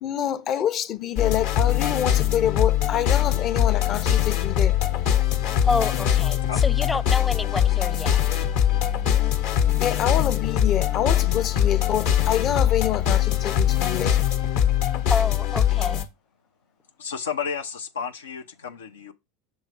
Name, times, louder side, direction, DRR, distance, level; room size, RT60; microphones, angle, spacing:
voice 1, 0.0-4.7 9.8-14.2, left 10 dB, 45° left, 0.7 m, -26 dB
sound 1, 1.2-16.0, left 10 dB, 65° left, 1.0 m, -22 dB
voice 2, 5.6-8.2 15.1-16.0, left 3 dB, 15° left, 0.4 m, -28 dB
voice 3, 17.0-19.1, left 6 dB, 90° left, 0.6 m, -32 dB
6.4 x 3.2 x 4.9 m
hypercardioid pair, 90°, 0 cm